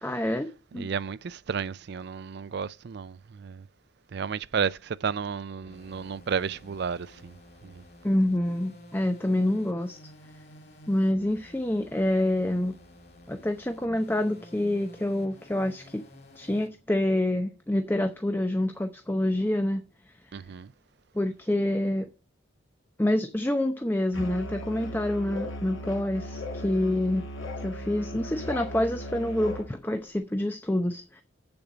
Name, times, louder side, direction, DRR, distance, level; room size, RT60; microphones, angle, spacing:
voice 1, 0.0-0.9 8.0-10.0 10.9-12.8 13.3-16.0 16.4-19.8 21.1-22.1 23.0-27.2 27.6-31.2, left 1 dB, 10° left, 0.7 m, -27 dB
voice 2, 0.7-3.6 4.1-7.4 7.6-7.8 20.3-20.7, right 6 dB, 55° right, 0.4 m, -32 dB
sound 1, 5.6-16.7, left 1 dB, 55° left, 2.7 m, -51 dB
Musical instrument, 24.1-29.7, equal, 80° left, 2.3 m, -37 dB
7.9 x 7.0 x 5.0 m
head